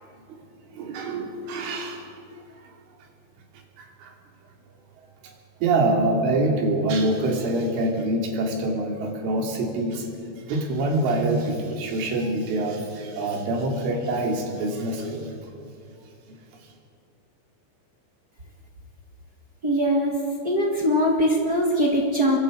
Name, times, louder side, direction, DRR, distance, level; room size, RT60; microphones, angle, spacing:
voice 1, 0.7-2.2 2.5-2.8 3.8-4.2 5.2-5.3 5.6-10.1 10.3-15.3 16.3-16.7, right 2 dB, 80° right, 2 dB, 5.4 m, -25 dB
voice 2, 19.6-20.2 20.4-22.4, equal, 45° right, -2 dB, 1.2 m, -21 dB
27.5 x 23.0 x 5.3 m, 2.5 s
omnidirectional pair, 5.5 m